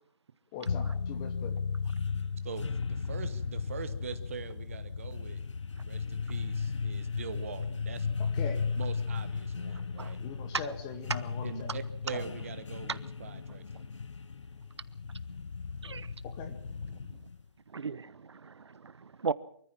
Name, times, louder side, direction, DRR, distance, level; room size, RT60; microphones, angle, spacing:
voice 1, 0.5-1.6 8.2-8.6 10.2-11.8 12.1-12.2 16.3-16.6, left 6 dB, 10° left, 1.0 m, -41 dB
sound 1, 0.7-17.4, left 5 dB, 90° left, 0.9 m, -35 dB
voice 2, 2.4-5.4 5.8-8.1 8.7-10.2 11.4-13.8, right 7 dB, 30° right, 1.2 m, -43 dB
voice 3, 17.7-19.3, right 5 dB, 70° right, 1.0 m, -37 dB
24.5 x 14.5 x 7.4 m
hypercardioid pair, 175°, 15 cm